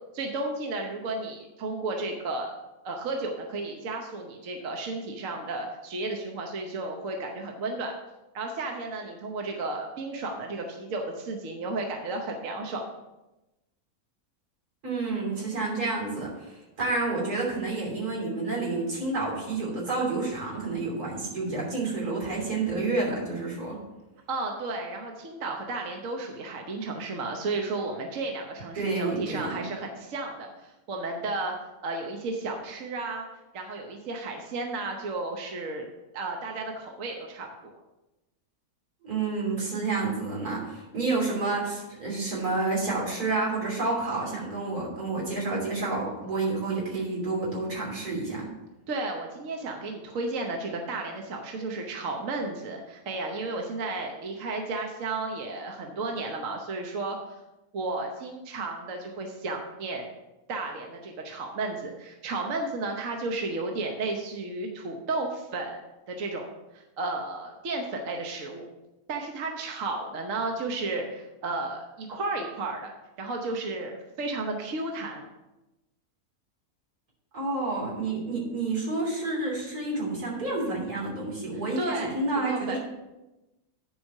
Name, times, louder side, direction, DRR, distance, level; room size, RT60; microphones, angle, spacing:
voice 1, 0.1-2.5 2.8-7.9 8.3-12.8 24.3-31.5 31.8-33.2 33.5-35.9 36.1-37.7 48.9-57.2 57.7-60.1 60.5-65.8 66.1-68.7 69.1-75.3 81.8-82.8, right 3 dB, 60° right, 2 dB, 1.3 m, -33 dB
voice 2, 14.8-23.8 28.8-29.6 39.0-48.5 77.3-82.8, right 3 dB, 90° right, -3 dB, 3.6 m, -29 dB
10.5 x 4.9 x 5.4 m, 1.0 s
omnidirectional pair, 1.6 m